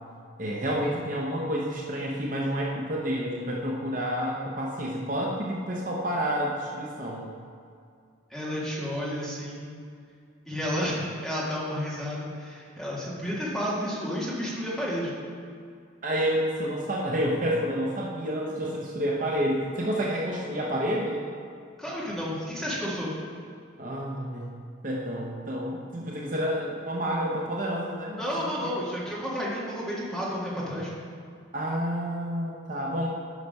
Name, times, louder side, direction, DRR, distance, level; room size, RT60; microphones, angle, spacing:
voice 1, 0.4-7.3 16.0-21.3 23.8-24.5 24.8-28.7 31.5-33.1, equal, 40° right, -2 dB, 0.8 m, -29 dB
voice 2, 8.3-9.7 10.4-15.1 21.8-23.1 28.2-30.9, equal, ahead, -7 dB, 1.7 m, -31 dB
8.1 x 5.7 x 5.4 m, 2.3 s
head